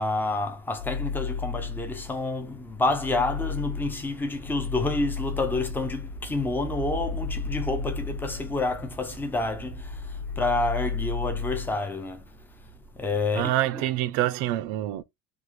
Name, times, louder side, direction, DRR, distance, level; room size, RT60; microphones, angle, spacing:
voice 1, 0.0-13.8, left 2 dB, 5° left, 0.4 m, -29 dB
sound 1, 0.8-2.2 2.6-9.1 9.5-11.7, left 5 dB, 40° left, 0.8 m, -34 dB
voice 2, 13.3-15.0, right 14 dB, 75° right, 0.5 m, -26 dB
3.4 x 2.4 x 3.1 m
cardioid pair, 155°, 37 cm